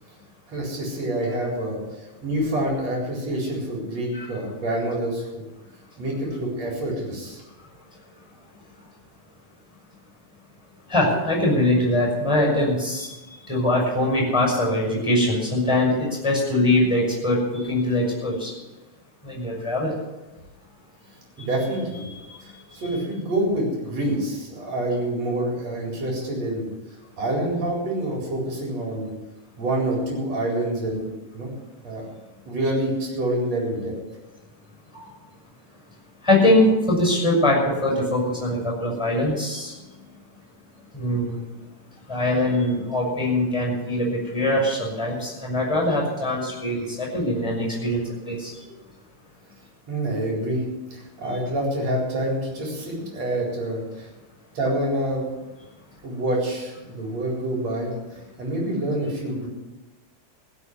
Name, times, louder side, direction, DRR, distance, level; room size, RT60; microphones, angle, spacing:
voice 1, 0.5-1.8 2.2-5.5 6.0-7.4 21.4-22.1 22.4-22.5 22.7-26.7 27.2-29.1 29.6-31.5 31.8-32.1 32.5-33.9 49.9-50.6 50.9-54.1 54.6-55.4 56.0-57.9 58.4-59.5, right 1 dB, 50° right, -2 dB, 5.3 m, -27 dB
voice 2, 10.9-13.1 13.5-18.5 19.2-19.9 22.3-22.4 34.9-35.0 36.2-39.7 40.9-41.4 42.1-48.5, left 1 dB, 10° left, -2 dB, 6.1 m, -22 dB
16.0 x 7.4 x 9.5 m, 1.1 s
omnidirectional pair, 4.0 m